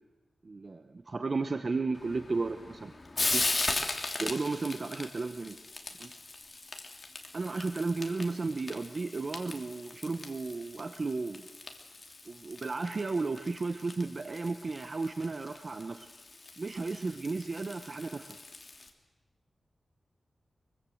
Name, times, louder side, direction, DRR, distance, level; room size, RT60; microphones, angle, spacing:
voice 1, 0.4-2.9 3.2-3.4 4.2-5.6 6.0-6.1 7.3-11.4 12.3-16.1 16.6-18.4, right 3 dB, 45° right, 8 dB, 1.1 m, -34 dB
Frying (food), 1.9-18.9, left 3 dB, 35° left, 2.9 m, -39 dB
24.5 x 23.5 x 8.0 m, 1.2 s
wide cardioid pair, 120°, 0 cm